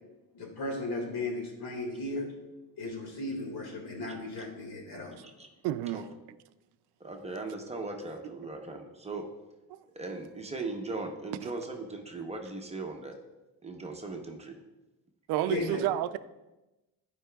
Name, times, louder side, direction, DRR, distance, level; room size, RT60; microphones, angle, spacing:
voice 1, 0.3-2.3 2.8-5.2 15.5-15.8, left 2 dB, 70° left, 1 dB, 2.1 m, -35 dB
voice 2, 5.6-6.0 9.7-9.8 11.4-11.5 15.3-16.2, right 13 dB, 80° right, 13 dB, 0.5 m, -30 dB
voice 3, 7.0-9.2 9.9-13.2 13.6-14.6, right 3 dB, 15° right, 3 dB, 0.8 m, -38 dB
14.0 x 4.9 x 2.3 m, 1.0 s
cardioid pair, 125°, 39 cm